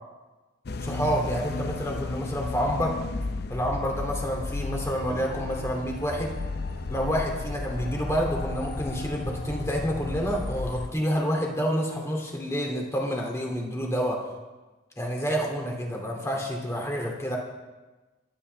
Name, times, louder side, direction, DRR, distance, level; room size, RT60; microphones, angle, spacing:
sound 1, 0.7-10.9, left 3 dB, 55° left, 0.6 m, -34 dB
voice 1, 0.8-3.0 3.5-6.3 6.9-14.3 15.0-17.4, equal, 15° left, 0 dB, 2.5 m, -28 dB
sound 2, 4.6-10.3, left 1 dB, 85° left, 3.2 m, -46 dB
28.0 x 10.0 x 3.4 m, 1.2 s
head